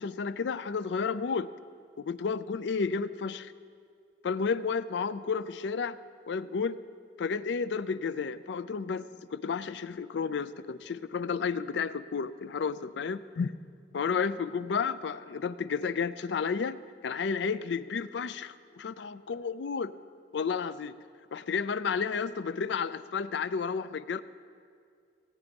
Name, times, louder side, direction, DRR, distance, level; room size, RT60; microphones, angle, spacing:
voice 1, 0.0-1.5 2.0-3.5 4.2-6.0 6.3-6.8 7.2-13.5 13.9-16.8 17.0-19.9 20.3-20.9 21.3-24.2, left 5 dB, 75° left, 15 dB, 0.4 m, -32 dB
15.5 x 9.6 x 5.2 m, 2.2 s
head